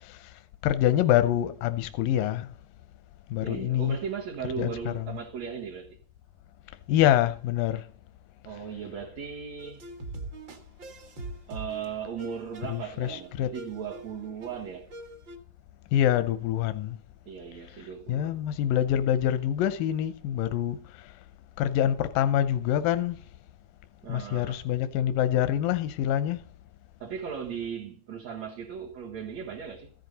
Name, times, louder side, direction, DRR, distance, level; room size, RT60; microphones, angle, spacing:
voice 1, 0.0-0.3 0.6-2.5 3.3-4.0 4.6-4.7 5.0-5.1 6.9-7.9 12.7-13.5 15.9-17.0 18.1-21.1 21.6-23.2 24.1-26.4, left 11 dB, 90° left, 2.4 m, -26 dB
voice 2, 3.4-6.0 8.5-9.8 11.5-14.9 17.3-18.4 24.0-24.7 27.0-29.9, right 7 dB, 60° right, 2.3 m, -37 dB
sound 1, 9.6-15.4, right 2 dB, 40° right, 1.9 m, -42 dB
14.5 x 10.5 x 3.9 m
omnidirectional pair, 3.8 m